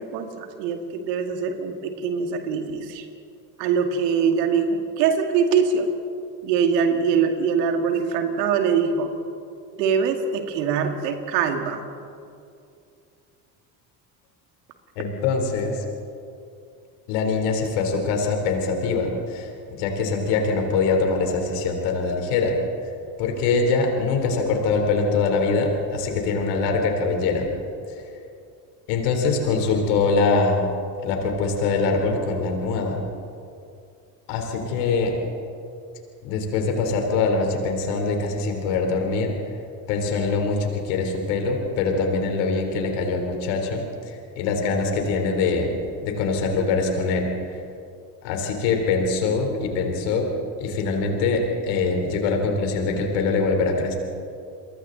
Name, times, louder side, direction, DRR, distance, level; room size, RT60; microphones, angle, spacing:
voice 1, 0.0-3.0 3.6-5.9 6.4-9.1 9.8-11.8, right 6 dB, 85° right, 5 dB, 2.3 m, -23 dB
voice 2, 15.0-15.8 17.1-19.5 19.8-22.6 23.2-27.5 28.9-30.8 31.0-33.0 34.3-35.1 36.2-39.3 39.9-47.3 48.2-50.3 50.6-53.9, left 4 dB, 80° left, 3 dB, 3.8 m, -23 dB
29.5 x 23.5 x 4.0 m, 2.5 s
hypercardioid pair, 65°, 48 cm